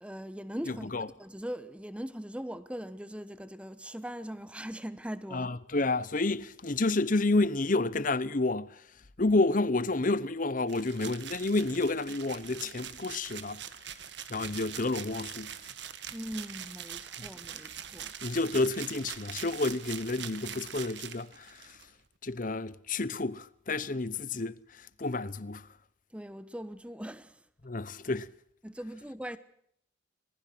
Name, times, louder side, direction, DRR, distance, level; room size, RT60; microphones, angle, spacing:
voice 1, 0.0-5.5 16.1-18.1 26.1-27.4 28.6-29.4, equal, 5° right, 1.0 m, -40 dB
voice 2, 0.7-1.1 5.3-8.8 9.2-13.6 14.3-15.5 18.2-21.8 22.2-25.7 27.6-28.3, left 2 dB, 40° left, 0.9 m, -30 dB
sound 1, 10.7-21.8, right 9 dB, 60° right, 1.6 m, -43 dB
26.0 x 20.5 x 6.1 m
head